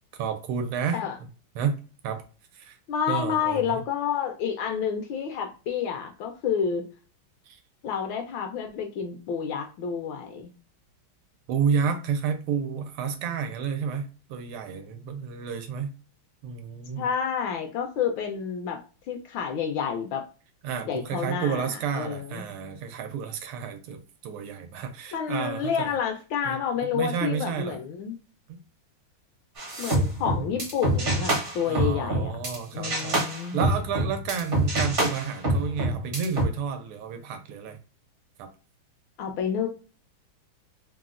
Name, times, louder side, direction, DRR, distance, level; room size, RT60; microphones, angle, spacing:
voice 1, 0.2-1.3 1.5-1.8 2.0-2.2 2.5-2.8 3.1-3.8 7.5-7.6 11.5-15.9 16.4-17.1 20.6-25.9 26.4-26.6 26.9-27.8 28.5-28.6 31.7-33.2 33.5-37.8 38.4-38.5, right 6 dB, 85° right, 1.5 m, -31 dB
voice 2, 2.9-6.8 7.8-10.5 17.0-18.8 19.1-20.3 20.8-22.4 25.1-28.2 29.8-32.4 32.7-33.6 39.2-39.7, left 7 dB, 75° left, 1.2 m, -29 dB
sound 1, 29.6-32.5 32.8-36.4, right 1 dB, 45° right, 0.7 m, -26 dB
3.8 x 2.1 x 2.4 m
omnidirectional pair, 2.3 m